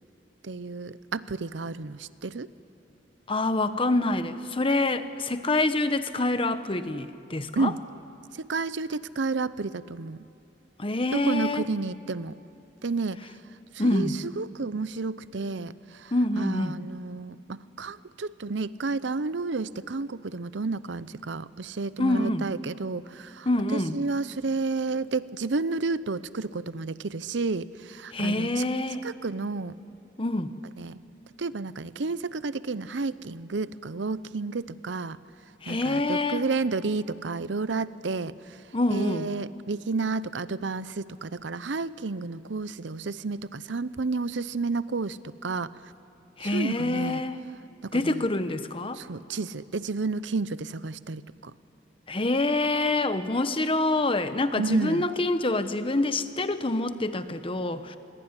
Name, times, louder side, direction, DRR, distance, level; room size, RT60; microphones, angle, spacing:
voice 1, 0.4-2.5 7.6-7.8 8.4-10.2 11.1-12.4 12.8-13.2 13.7-28.6 29.0-29.8 30.8-31.0 31.4-35.2 35.7-38.4 38.9-45.7 46.4-47.2 47.8-48.2 48.9-51.5 54.6-55.1, right 3 dB, 80° right, 16 dB, 0.7 m, -31 dB
voice 2, 3.3-7.7 10.8-11.6 13.8-14.2 16.1-16.8 22.0-22.5 23.4-24.0 28.1-29.1 30.2-30.5 35.6-36.4 38.7-39.3 46.4-47.4 47.9-49.0 52.1-58.0, left 2 dB, 30° left, 11 dB, 1.1 m, -26 dB
26.0 x 22.0 x 9.8 m, 2.6 s
head